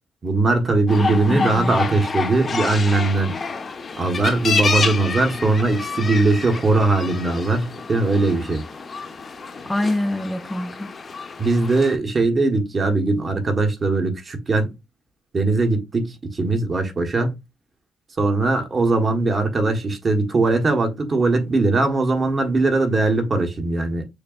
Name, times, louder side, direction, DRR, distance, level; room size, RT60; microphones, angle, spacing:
voice 1, 0.2-3.4 4.0-8.6 11.4-14.7 15.3-17.3 18.2-24.0, right 3 dB, 35° right, 1.1 m, -20 dB
sound 1, 0.9-12.0, left 4 dB, 40° left, 0.8 m, -28 dB
voice 2, 1.0-1.8 9.7-10.9, left 1 dB, 10° left, 0.5 m, -25 dB
6.5 x 2.2 x 2.4 m
cardioid pair, 90°, 0 cm